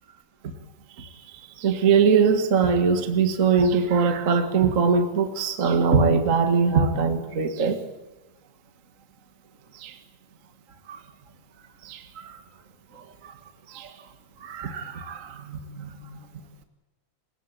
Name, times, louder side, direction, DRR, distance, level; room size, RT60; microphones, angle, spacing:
voice 1, 1.6-7.8 9.8-9.9 10.9-11.0 11.8-12.4 13.7-13.9 14.4-16.0, right 5 dB, 45° right, 7 dB, 1.0 m, -22 dB
21.0 x 18.0 x 8.1 m, 1.1 s
omnidirectional pair, 4.3 m